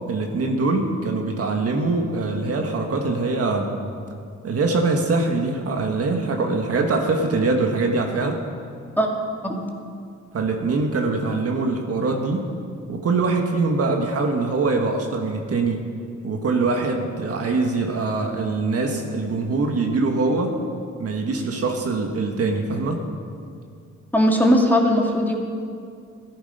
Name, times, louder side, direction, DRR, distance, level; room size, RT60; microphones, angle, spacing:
voice 1, 0.1-3.7 4.4-8.4 10.3-12.5 12.9-15.9 16.2-20.5 21.0-23.0, right 3 dB, 50° right, 2 dB, 1.6 m, -23 dB
voice 2, 24.1-25.4, equal, 5° left, 0 dB, 2.0 m, -18 dB
13.5 x 11.5 x 5.4 m, 2.3 s
cardioid pair, 90°, 30 cm